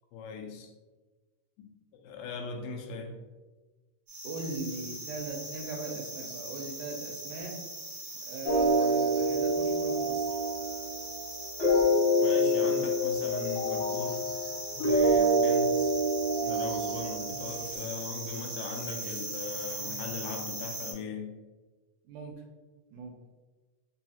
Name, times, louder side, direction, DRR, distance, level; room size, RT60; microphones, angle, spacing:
voice 1, 0.1-0.7 1.6-1.7 1.9-3.2 12.2-14.3 14.7-15.9 16.4-21.3, left 4 dB, 90° left, 2 dB, 2.3 m, -39 dB
sound 1, 4.1-20.9, right 2 dB, 55° right, 0.9 m, -40 dB
voice 2, 4.2-7.6 8.3-10.4 22.0-22.3 22.9-23.1, right 3 dB, 80° right, 0 dB, 2.0 m, -39 dB
sound 2, 8.4-17.6, equal, 60° left, 1.0 m, -27 dB
5.3 x 2.4 x 2.8 m, 1.2 s
omnidirectional pair, 3.9 m